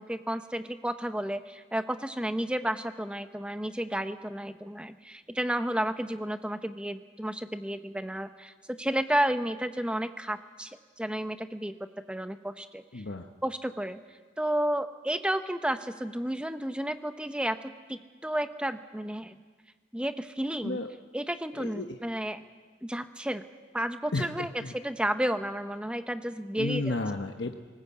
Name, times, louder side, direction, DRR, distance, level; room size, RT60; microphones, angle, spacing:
voice 1, 0.0-11.8 12.1-12.8 13.4-14.0 14.4-19.4 19.9-20.8 21.1-22.4 22.8-23.4 23.7-27.0, right 1 dB, 5° right, 9 dB, 0.7 m, -32 dB
voice 2, 12.9-13.2 20.6-20.9 21.6-21.9 24.1-24.3 24.6-24.7 26.6-27.5, left 2 dB, 65° left, 5 dB, 0.9 m, -32 dB
19.0 x 19.0 x 8.4 m, 1.5 s
head